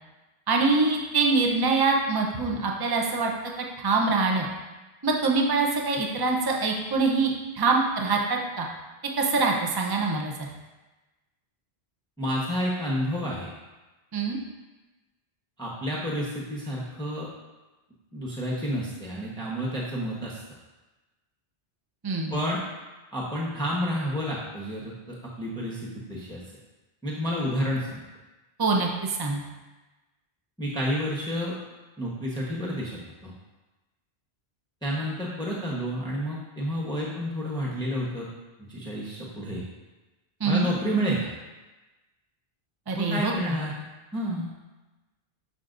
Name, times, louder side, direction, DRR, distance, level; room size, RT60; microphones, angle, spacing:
voice 1, 0.5-3.3 3.8-4.5 5.0-8.7 9.2-10.5 14.1-14.4 22.0-22.4 28.6-29.4 40.4-40.7 42.9-43.6, right 3 dB, 25° right, 0 dB, 0.7 m, -24 dB
voice 2, 12.2-13.5 15.6-17.3 18.1-20.4 22.3-22.6 23.1-26.4 27.0-28.0 30.6-31.6 32.0-33.3 34.8-38.3 38.7-39.7 40.4-41.3 42.9-43.7 44.1-44.5, equal, 5° left, -5 dB, 1.1 m, -30 dB
12.5 x 5.2 x 2.6 m, 1.1 s
omnidirectional pair, 1.1 m